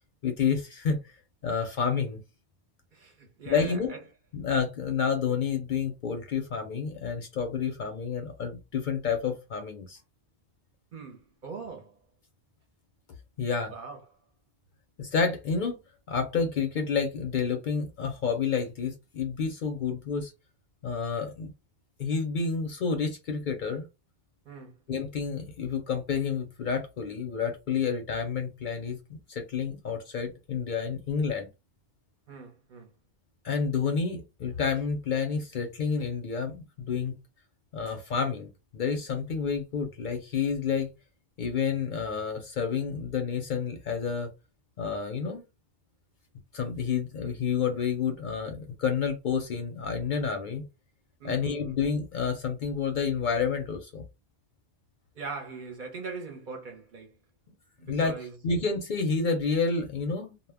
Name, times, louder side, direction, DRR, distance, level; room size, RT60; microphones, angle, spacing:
voice 1, 0.2-1.0 1.4-2.2 3.5-3.9 4.3-10.0 13.4-13.7 15.0-15.8 16.1-20.3 20.8-21.5 22.0-23.9 24.9-31.5 33.4-37.2 37.7-40.9 41.4-44.3 44.8-45.4 46.5-50.7 51.2-54.0 57.9-58.2 58.4-60.3, left 6 dB, 60° left, 0.6 m, -29 dB
voice 2, 2.9-4.0 10.9-12.0 13.7-14.0 24.5-24.7 32.3-32.9 51.2-51.8 55.1-57.1 57.9-58.4, right 4 dB, 55° right, 0.7 m, -41 dB
2.1 x 2.0 x 3.3 m
omnidirectional pair, 1.1 m